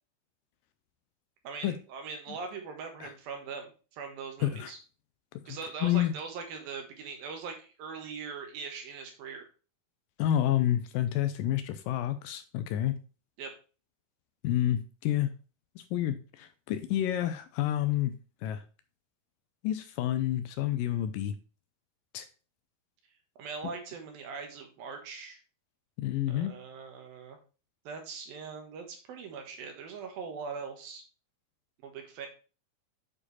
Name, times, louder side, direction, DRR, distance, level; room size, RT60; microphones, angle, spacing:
voice 1, 1.4-4.8 5.5-9.4 13.4-13.5 23.4-25.4 26.3-27.4 27.8-31.0 31.8-32.3, right 5 dB, 75° right, 4 dB, 3.2 m, -41 dB
voice 2, 4.4-4.7 5.8-6.1 10.2-13.0 14.4-15.3 15.8-18.1 18.4-18.6 19.6-21.3 22.1-22.3 26.0-26.5, left 12 dB, 80° left, 11 dB, 2.1 m, -29 dB
8.8 x 4.8 x 4.1 m, 0.34 s
omnidirectional pair, 4.2 m